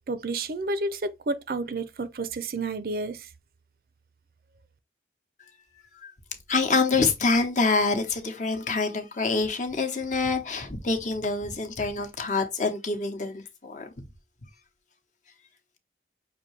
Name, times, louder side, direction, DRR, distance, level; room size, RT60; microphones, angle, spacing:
voice 1, 0.1-3.3, right 2 dB, 55° right, 0.5 m, -30 dB
voice 2, 6.5-13.9, left 3 dB, 40° left, 1.0 m, -26 dB
6.0 x 2.7 x 3.2 m
head